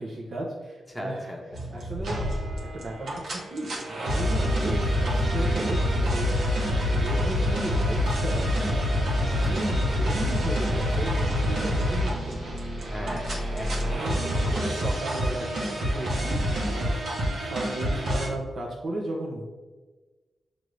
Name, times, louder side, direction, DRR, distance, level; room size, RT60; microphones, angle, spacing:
voice 1, 0.0-1.3 1.7-2.2 2.6-6.6 6.9-8.8 9.2-12.5 13.8-14.2 14.7-17.0 17.4-19.4, right 2 dB, 55° right, -3 dB, 0.7 m, -35 dB
voice 2, 0.9-1.4 2.3-2.4 9.3-9.8 12.9-14.0 14.3-14.9, left 1 dB, 10° left, 0 dB, 0.9 m, -37 dB
sound 1, 1.5-18.3, equal, 80° right, 0.9 m, -26 dB
6.1 x 2.6 x 3.1 m, 1.3 s
cardioid pair, 90°, 0 cm